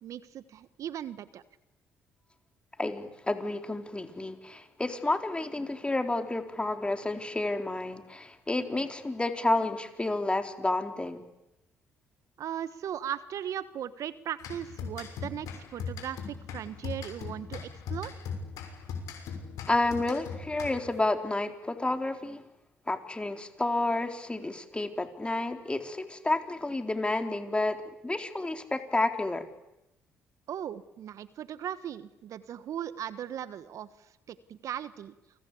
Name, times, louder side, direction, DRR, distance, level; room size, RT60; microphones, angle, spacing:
voice 1, 0.0-1.4 12.4-18.1 30.5-33.9 34.3-35.1, right 10 dB, 60° right, 15 dB, 1.3 m, -38 dB
voice 2, 2.8-11.2 19.7-22.4 22.9-27.8 28.0-29.4, left 2 dB, 15° left, 7 dB, 3.9 m, -30 dB
sound 1, 14.4-21.1, left 5 dB, 70° left, 6.2 m, -39 dB
29.0 x 24.0 x 8.6 m, 0.90 s
hypercardioid pair, 50°, 6 cm